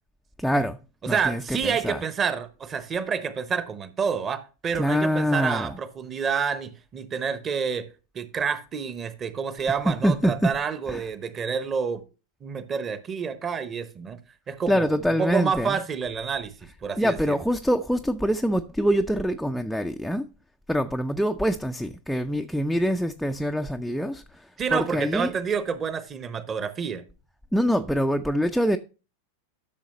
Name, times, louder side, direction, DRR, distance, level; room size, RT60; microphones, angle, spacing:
voice 1, 0.4-0.8 1.1-2.0 4.7-5.7 9.9-10.5 10.9-11.0 14.7-15.8 17.0-20.3 20.7-25.3 27.5-28.8, equal, ahead, 0.4 m, -25 dB
voice 2, 1.0-7.9 8.1-12.0 12.4-14.2 14.5-17.4 24.6-27.0, right 6 dB, 25° right, 0.9 m, -28 dB
12.0 x 6.3 x 3.0 m
figure-of-eight pair, 90°, 0 cm